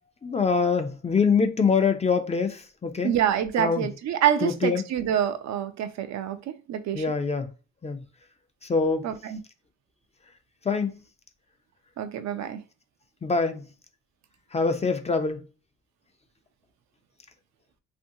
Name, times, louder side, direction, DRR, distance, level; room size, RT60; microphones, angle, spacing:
voice 1, 0.2-3.1 3.6-3.9 4.4-4.8 6.9-7.5 7.8-8.0 8.6-9.1 10.6-10.9 13.2-13.6 14.5-15.5, left 5 dB, 20° left, 0.4 m, -24 dB
voice 2, 3.0-7.0 9.0-9.4 12.0-12.6, right 10 dB, 65° right, 0.5 m, -26 dB
2.8 x 2.5 x 2.7 m
cardioid pair, 90°, 30 cm